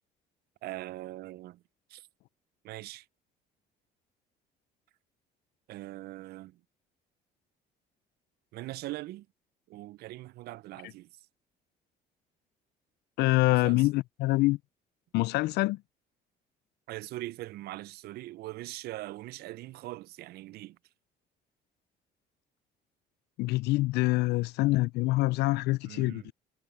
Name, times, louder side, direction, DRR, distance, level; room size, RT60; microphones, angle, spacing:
voice 1, 0.6-1.6 1.9-2.1 2.6-3.1 5.7-6.6 8.5-9.3 9.7-11.1 13.5-13.9 16.9-20.8 25.9-26.3, right 17 dB, 70° right, 0.4 m, -41 dB
voice 2, 13.2-14.6 15.1-15.8 23.4-26.3, left 20 dB, 80° left, 0.4 m, -25 dB
cardioid pair, 110°, 17 cm